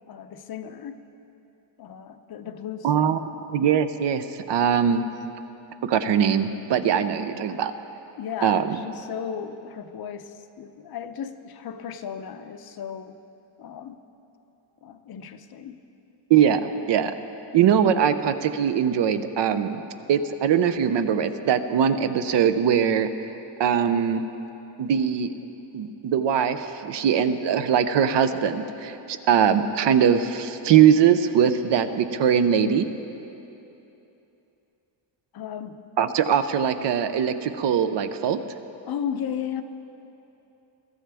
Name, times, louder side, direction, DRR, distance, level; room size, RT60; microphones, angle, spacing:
voice 1, 0.1-1.0 1.8-3.1 4.9-5.1 8.2-13.2 13.6-14.0 14.8-15.8 35.3-35.8 38.9-39.6, left 8 dB, 50° left, 8 dB, 0.7 m, -35 dB
voice 2, 2.8-3.2 3.5-5.1 5.8-7.7 8.4-8.8 16.3-17.2 17.5-19.8 20.1-23.3 23.6-24.2 24.8-25.5 25.7-32.9 36.0-38.4, right 8 dB, 55° right, 10 dB, 0.7 m, -21 dB
22.0 x 13.5 x 3.5 m, 3.0 s
cardioid pair, 150°, 50 cm